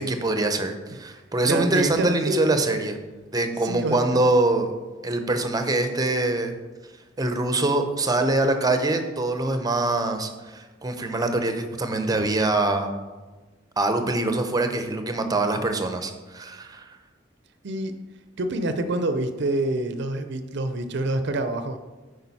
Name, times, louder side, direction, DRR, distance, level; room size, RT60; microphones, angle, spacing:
voice 1, 0.0-3.0 3.3-4.7 5.0-6.5 7.2-12.9 13.8-16.8, right 2 dB, 20° right, 7 dB, 0.7 m, -24 dB
voice 2, 1.5-2.6 3.6-4.0 17.6-17.9 18.4-21.8, right 2 dB, 65° right, 9 dB, 0.5 m, -27 dB
8.7 x 5.0 x 4.1 m, 1.2 s
head